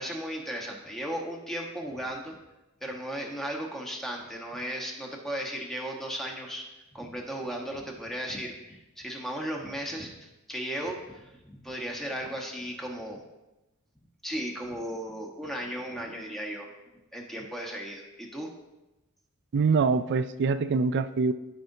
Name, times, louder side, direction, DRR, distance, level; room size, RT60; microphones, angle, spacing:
voice 1, 0.0-2.4 2.8-13.2 14.2-16.7 17.1-18.5, equal, ahead, -1 dB, 1.1 m, -36 dB
voice 2, 19.5-21.3, right 4 dB, 50° right, 12 dB, 0.4 m, -24 dB
14.5 x 4.9 x 2.7 m, 1.0 s
head